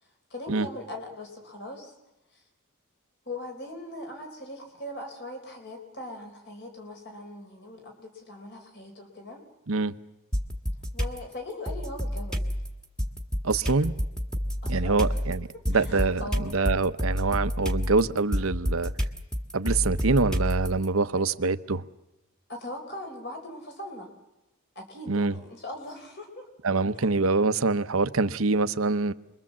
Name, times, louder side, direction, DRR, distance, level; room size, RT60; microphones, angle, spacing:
voice 1, 0.3-1.9 2.3-2.4 3.3-9.4 10.9-12.4 14.6-15.2 15.7-16.5 21.1-21.2 22.5-24.1 24.7-26.5 26.9-27.1, left 1 dB, 55° left, 4.1 m, -40 dB
sound 1, 10.3-11.2 11.7-20.9, equal, 5° left, 1.6 m, -29 dB
voice 2, 13.4-13.9 14.7-18.9 19.5-21.8 25.1-25.3 26.6-29.1, right 3 dB, 80° right, 0.9 m, -25 dB
27.5 x 22.5 x 7.4 m
head